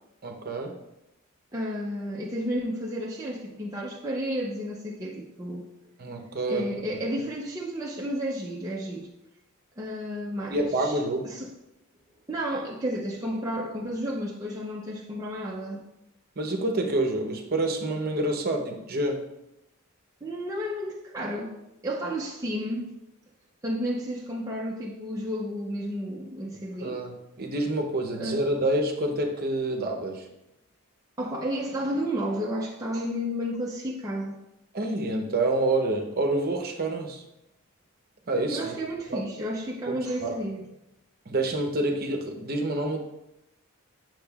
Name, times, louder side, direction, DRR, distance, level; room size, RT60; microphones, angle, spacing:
voice 1, 0.2-0.7 6.0-6.6 10.5-11.3 16.4-19.2 26.8-30.3 34.7-37.2 38.3-38.8 39.1-39.2 39.9-40.4 41.3-43.0, right 2 dB, 45° right, 3 dB, 0.8 m, -27 dB
voice 2, 1.5-5.7 6.5-9.1 9.8-11.0 11.2-11.5 12.3-15.8 20.2-21.5 21.8-22.9 23.6-27.0 28.1-28.4 31.2-34.4 38.5-40.7, equal, 15° right, -3 dB, 0.6 m, -32 dB
8.4 x 6.2 x 2.4 m, 0.90 s
head